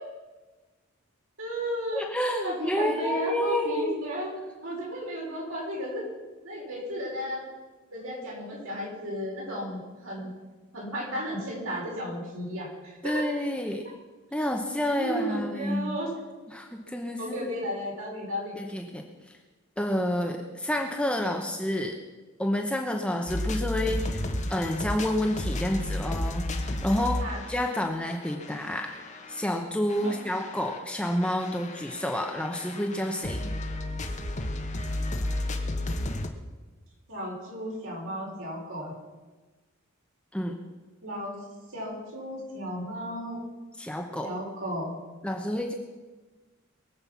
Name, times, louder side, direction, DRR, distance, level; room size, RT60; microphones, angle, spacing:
voice 1, 1.4-2.1 2.4-4.3 4.6-6.1 6.4-7.5 7.9-10.3 10.7-13.2 15.0-16.1 17.2-18.5 27.2-27.4 30.0-30.2 37.1-38.9 41.0-41.4 41.7-43.4 44.2-45.0, equal, 85° right, -3 dB, 5.4 m, -34 dB
voice 2, 1.9-4.0 13.0-13.9 14.3-16.0 16.5-17.5 18.6-19.0 19.8-22.0 22.4-24.2 24.5-28.9 29.3-33.5 40.3-40.6 43.8-44.3 45.2-45.7, left 1 dB, 5° left, 2 dB, 0.9 m, -29 dB
sound 1, 23.3-29.5 29.9-36.3, left 1 dB, 35° left, 1.1 m, -33 dB
22.0 x 7.8 x 5.8 m, 1.3 s
head